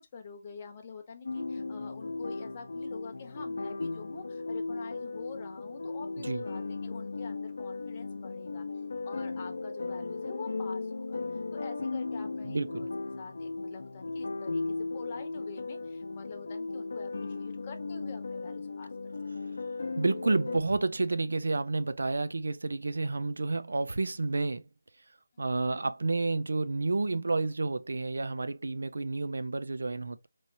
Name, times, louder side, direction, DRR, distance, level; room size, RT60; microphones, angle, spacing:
voice 1, 0.0-8.7 9.0-11.2 11.5-12.9 13.2-19.1 19.4-19.6 25.3-25.8, left 5 dB, 30° left, 0.9 m, -47 dB
sound 1, 1.2-20.6, left 3 dB, 70° left, 0.7 m, -36 dB
voice 2, 12.4-12.9 20.0-24.7 25.4-30.3, right 3 dB, 75° right, 0.5 m, -30 dB
4.1 x 3.1 x 2.6 m
figure-of-eight pair, 165°, 0 cm